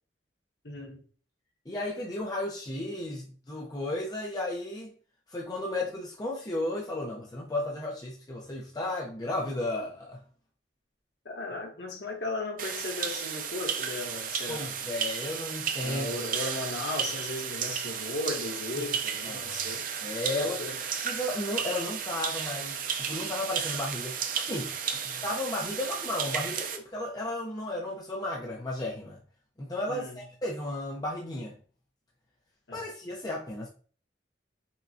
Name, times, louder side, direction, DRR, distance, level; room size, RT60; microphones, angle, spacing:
voice 1, 0.6-1.0 11.2-14.7 15.8-19.9 20.3-20.8 25.0-25.2 29.9-30.2 32.7-32.8, left 2 dB, 70° left, 1 dB, 1.2 m, -36 dB
voice 2, 1.7-4.9 5.3-10.2 14.5-16.1 18.8-18.9 19.2-19.6 20.0-20.6 21.0-24.7 25.2-29.2 29.6-31.6 32.7-33.7, left 1 dB, 20° left, -3 dB, 0.6 m, -34 dB
sound 1, 12.6-26.8, right 7 dB, 50° right, 0.5 m, -33 dB
5.6 x 2.3 x 2.7 m, 0.42 s
head